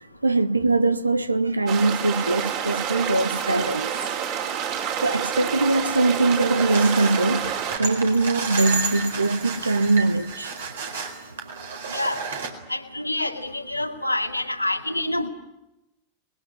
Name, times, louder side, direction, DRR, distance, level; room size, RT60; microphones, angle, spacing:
voice 1, 0.2-4.0 5.0-10.5 15.0-15.1, right 2 dB, 80° right, 1.0 m, -22 dB
sound 1, 1.7-7.8, right 8 dB, 45° right, 5.5 m, -28 dB
sound 2, 6.5-12.5, right 5 dB, 65° right, 4.2 m, -31 dB
voice 2, 12.7-15.3, left 1 dB, 85° left, 2.3 m, -27 dB
26.5 x 21.5 x 8.6 m
figure-of-eight pair, 90°, 0 cm